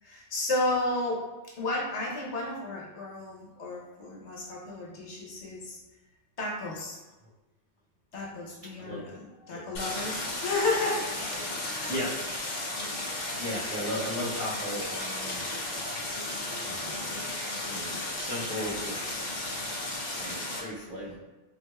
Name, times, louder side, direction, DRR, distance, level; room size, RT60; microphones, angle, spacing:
voice 1, 0.0-5.8 6.4-7.0 8.1-12.0 19.9-20.0, left 2 dB, 70° left, -3 dB, 1.0 m, -33 dB
Stream, 9.7-20.6, left 2 dB, 50° left, 0.5 m, -34 dB
voice 2, 11.9-12.2 13.3-15.5 16.6-17.2 17.6-19.4 20.2-21.2, equal, 30° right, -11 dB, 1.3 m, -36 dB
4.7 x 2.5 x 2.2 m, 1.1 s
omnidirectional pair, 1.2 m